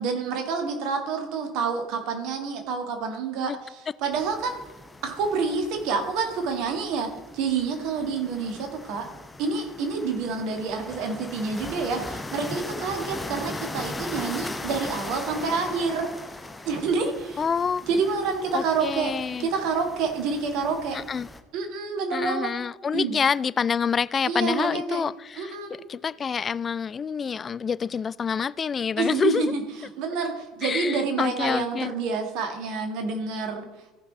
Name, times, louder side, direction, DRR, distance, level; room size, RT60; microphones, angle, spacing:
voice 1, 0.0-4.6 5.0-7.1 7.3-9.1 9.4-16.1 16.6-17.5 17.9-19.1 19.4-21.0 21.5-22.5 22.9-23.2 24.3-25.1 25.4-25.8 29.0-33.7, right 5 dB, 60° right, 4 dB, 1.7 m, -28 dB
sound 1, 4.1-21.4, left 2 dB, 15° left, 0.9 m, -39 dB
voice 2, 17.4-17.9 18.5-19.5 20.9-21.3 22.1-25.6 25.9-29.5 30.6-31.9, left 6 dB, 30° left, 20 dB, 0.3 m, -27 dB
14.5 x 5.8 x 4.1 m, 1.2 s
figure-of-eight pair, 60°, 0 cm